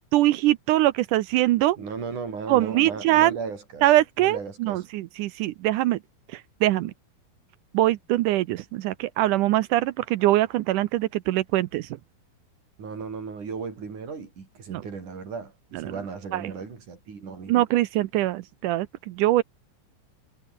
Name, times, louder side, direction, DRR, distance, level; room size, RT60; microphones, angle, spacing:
voice 1, 0.1-1.8 2.5-3.4 3.8-6.0 6.3-6.9 7.7-11.9 14.7-14.8 15.9-16.0 16.3-16.4 17.5-19.4, right 15 dB, 80° right, 1.9 m, -23 dB
voice 2, 1.8-3.9 4.2-4.8 12.8-17.5, right 5 dB, 55° right, 5.6 m, -36 dB
omnidirectional pair, 4.3 m